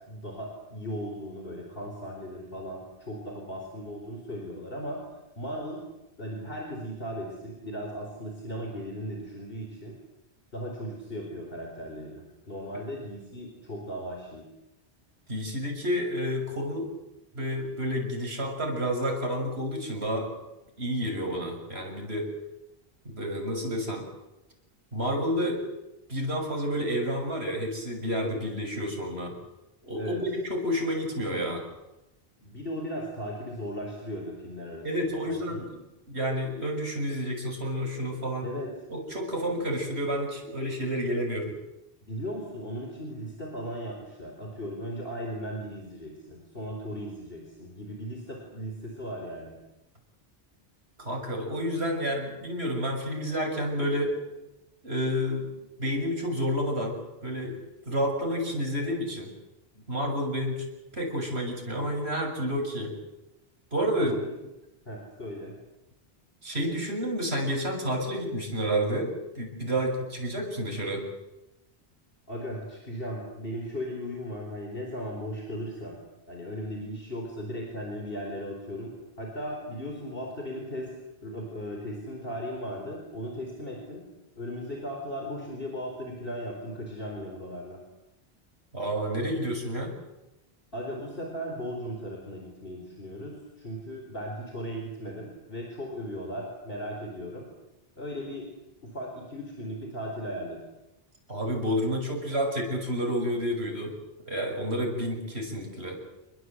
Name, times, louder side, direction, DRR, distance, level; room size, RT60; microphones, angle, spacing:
voice 1, 0.1-5.0 5.4-5.8 6.2-9.9 10.5-14.5 30.0-30.2 32.4-35.6 38.4-38.7 42.0-49.6 64.0-64.2 64.8-65.5 72.3-76.0 76.3-80.9 81.2-84.0 84.3-87.8 90.7-97.5 98.0-98.5 98.8-100.6, equal, 60° left, 1 dB, 4.7 m, -37 dB
voice 2, 15.3-16.9 17.3-20.4 20.8-22.3 23.1-24.0 24.9-25.6 26.1-29.4 29.8-31.6 34.8-35.7 36.1-38.5 38.9-41.5 51.0-54.2 54.8-55.4 55.8-57.6 57.9-59.3 59.9-60.6 60.9-62.9 63.7-64.2 66.4-71.0 88.7-90.0 101.3-103.9 104.3-105.9, equal, 75° right, 2 dB, 6.9 m, -30 dB
28.5 x 21.5 x 7.9 m, 0.96 s
omnidirectional pair, 1.1 m